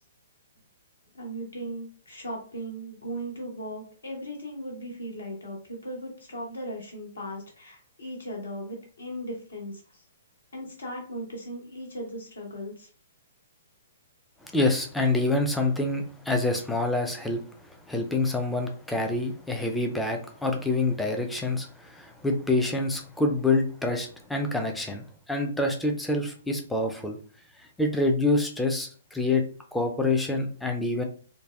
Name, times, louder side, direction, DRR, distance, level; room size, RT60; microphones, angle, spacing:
voice 1, 1.1-10.0 10.5-12.9, equal, 65° left, 0 dB, 1.2 m, -37 dB
voice 2, 14.4-17.4 17.7-27.2 27.8-29.4 29.7-31.0, left 2 dB, 5° left, 3 dB, 0.4 m, -26 dB
3.9 x 2.2 x 2.3 m, 0.42 s
figure-of-eight pair, 120°, 0 cm